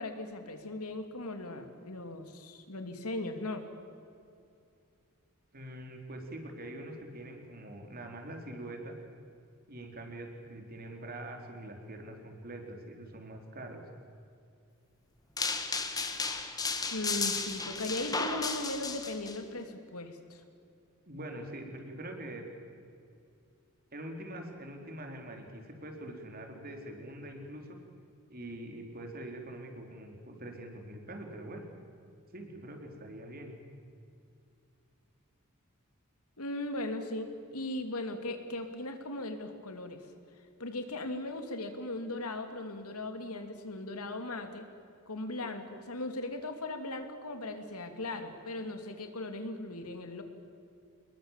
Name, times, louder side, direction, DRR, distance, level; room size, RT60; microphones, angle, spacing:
voice 1, 0.0-3.6 16.9-20.4 36.4-40.1 40.6-44.6 45.1-50.2, left 2 dB, 85° left, 6 dB, 2.8 m, -38 dB
voice 2, 5.5-9.0 9.7-13.8 21.1-22.5 23.9-27.8 28.3-31.6 32.3-33.5, right 1 dB, 40° right, 3 dB, 3.9 m, -44 dB
sound 1, 15.4-19.4, left 4 dB, 15° left, 1.7 m, -34 dB
27.0 x 21.5 x 7.5 m, 2.5 s
head